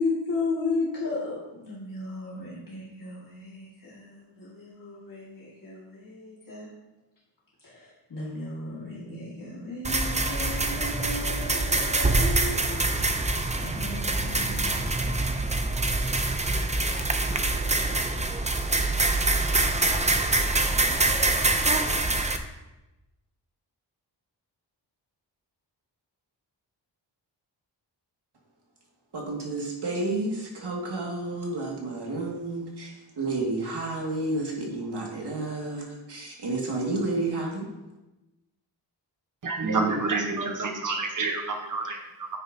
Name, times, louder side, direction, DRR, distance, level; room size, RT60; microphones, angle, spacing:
voice 1, 0.0-6.7 7.6-16.3 16.5-17.6 17.9-18.3, left 3 dB, 50° left, -8 dB, 2.1 m, -35 dB
sound 1, 9.8-22.4, right 2 dB, 15° right, 0.5 m, -25 dB
voice 2, 29.1-37.7, right 2 dB, 65° right, -1 dB, 2.1 m, -31 dB
voice 3, 39.4-42.3, right 3 dB, 45° right, 3 dB, 1.1 m, -28 dB
9.5 x 8.7 x 2.8 m, 1.0 s
wide cardioid pair, 150°, 44 cm